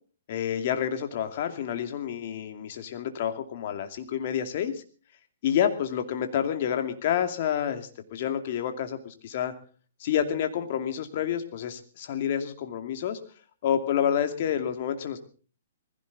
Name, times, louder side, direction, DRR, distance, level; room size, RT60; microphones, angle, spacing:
voice 1, 0.3-4.8 5.4-9.5 10.0-13.2 13.6-15.2, left 9 dB, 45° left, 7 dB, 2.5 m, -29 dB
20.0 x 16.5 x 4.1 m, 0.40 s
hypercardioid pair, 155°, 0 cm